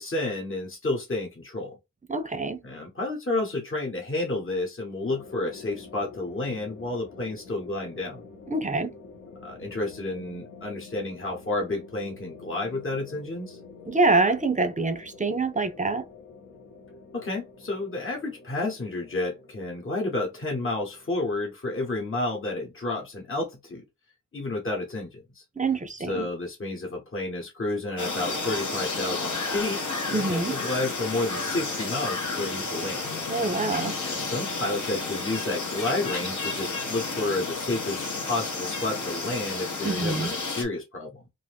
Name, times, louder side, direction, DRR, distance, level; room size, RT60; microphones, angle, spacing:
voice 1, 0.0-1.8 2.6-8.2 9.4-13.6 17.1-23.8 24.3-25.4 26.1-29.8 30.1-33.0 34.0-41.2, left 2 dB, 40° left, 1.1 m, -31 dB
voice 2, 2.1-2.6 8.5-8.9 13.9-16.0 25.6-26.3 30.1-30.5 33.3-33.9 39.8-40.3, right 3 dB, 25° right, 0.5 m, -25 dB
sound 1, 5.0-21.5, left 4 dB, 85° left, 1.3 m, -47 dB
sound 2, 28.0-40.6, left 3 dB, 70° left, 1.0 m, -31 dB
2.6 x 2.5 x 3.4 m
cardioid pair, 50°, 31 cm